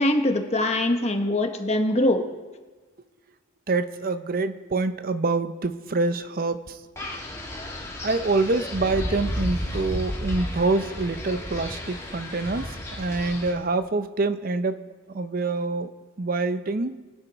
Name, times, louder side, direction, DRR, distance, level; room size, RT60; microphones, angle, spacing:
voice 1, 0.0-2.3, left 1 dB, 30° left, 5 dB, 1.0 m, -22 dB
voice 2, 3.7-6.8 8.0-12.7 13.0-14.8 15.1-15.9 16.2-17.0, right 3 dB, 45° right, 11 dB, 0.6 m, -26 dB
Wind, 7.0-13.5, left 1 dB, 15° left, 1.9 m, -33 dB
22.5 x 8.9 x 4.0 m, 1.3 s
head